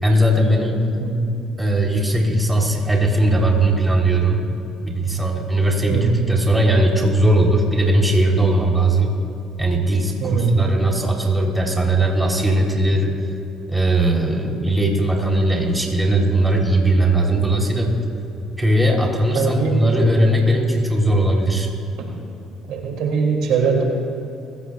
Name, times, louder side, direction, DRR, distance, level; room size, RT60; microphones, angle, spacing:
voice 1, 0.0-0.9 1.6-4.5 4.8-9.2 9.6-13.2 13.7-17.9 18.6-21.7, right 1 dB, 10° right, -1 dB, 3.6 m, -18 dB
voice 2, 1.0-1.4 5.8-6.3 10.2-10.8 19.3-19.9 22.0-22.1 22.7-23.8, right 5 dB, 80° right, 0 dB, 2.6 m, -21 dB
24.0 x 16.0 x 2.4 m, 2.9 s
cardioid pair, 90°, 0 cm